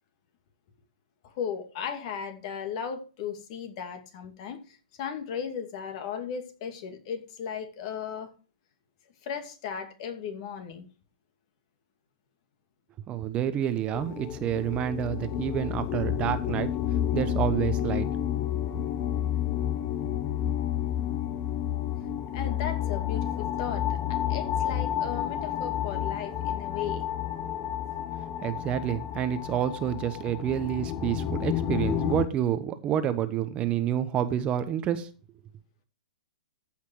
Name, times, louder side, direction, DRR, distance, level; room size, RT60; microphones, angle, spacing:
voice 1, 1.2-8.3 9.2-10.9 22.3-27.1, left 7 dB, 50° left, 2.4 m, -36 dB
voice 2, 13.1-16.7 17.1-18.1 28.4-35.1, right 10 dB, 25° right, 0.9 m, -28 dB
sound 1, 13.9-32.3, left 10 dB, 30° left, 0.9 m, -30 dB
14.5 x 5.8 x 4.6 m
hypercardioid pair, 135°, 4 cm